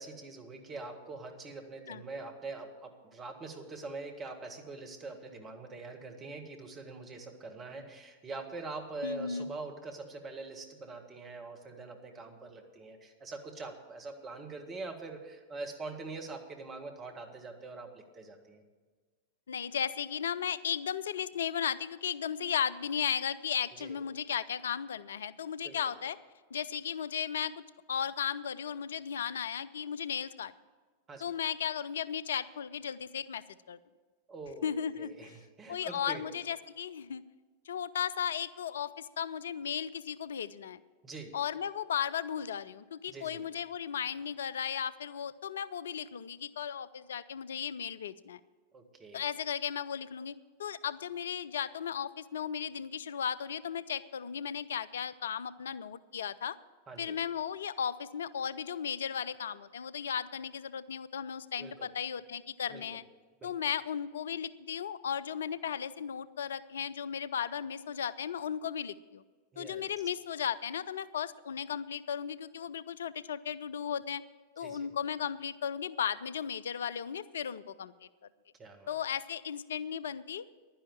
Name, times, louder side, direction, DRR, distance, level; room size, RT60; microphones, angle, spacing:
voice 1, 0.0-18.6 23.8-24.0 25.6-25.9 31.1-31.2 34.3-36.2 41.0-41.3 43.1-43.4 48.7-49.3 56.9-57.2 61.6-61.9 62.7-63.0 63.4-63.5 69.5-69.9 74.6-74.9 78.6-78.9, right 3 dB, 25° right, 4 dB, 1.8 m, -44 dB
voice 2, 9.0-9.5 19.5-26.2 26.5-27.6 27.9-30.5 31.2-33.8 34.6-35.3 35.7-37.2 37.7-40.8 41.3-48.4 49.1-50.3 50.6-56.6 57.0-63.0 63.4-69.2 69.6-74.2 74.6-77.9 78.9-80.4, left 8 dB, 65° left, 17 dB, 0.4 m, -35 dB
11.0 x 10.5 x 7.2 m, 1.4 s
figure-of-eight pair, 90°, 0 cm